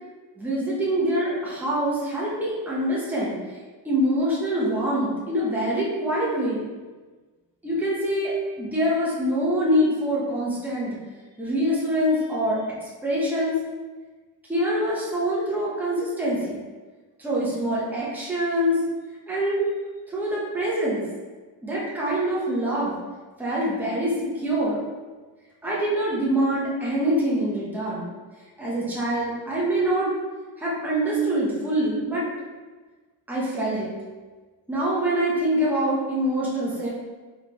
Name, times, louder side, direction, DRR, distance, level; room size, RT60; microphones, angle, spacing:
voice 1, 0.4-3.6 3.8-6.6 7.6-11.0 11.4-12.6 13.0-13.6 14.5-16.6 17.2-18.8 19.3-19.7 20.1-21.0 21.6-22.9 23.4-24.8 25.6-28.1 28.6-30.1 30.6-32.3 33.3-33.9 34.7-36.9, equal, 5° right, -7 dB, 0.9 m, -25 dB
3.6 x 3.6 x 3.0 m, 1.3 s
cardioid pair, 150°, 43 cm